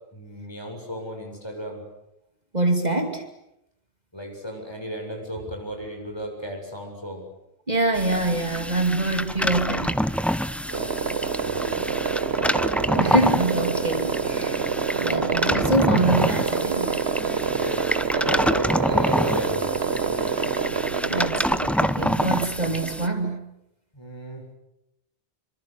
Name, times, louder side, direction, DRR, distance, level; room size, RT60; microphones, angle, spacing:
voice 1, 0.1-1.8 4.1-7.3 10.5-10.9 11.4-11.9 17.4-19.8 20.1-20.5 23.9-24.4, equal, 25° left, 2 dB, 7.3 m, -35 dB
voice 2, 2.5-3.2 7.7-10.0 13.0-14.6 15.0-17.0 21.0-23.4, right 2 dB, 40° right, 5 dB, 2.7 m, -25 dB
sound 1, 7.9-23.1, equal, ahead, 0.8 m, -27 dB
sound 2, 10.7-23.4, right 6 dB, 80° right, 1.5 m, -27 dB
27.5 x 25.5 x 8.4 m, 0.85 s
omnidirectional pair, 1.1 m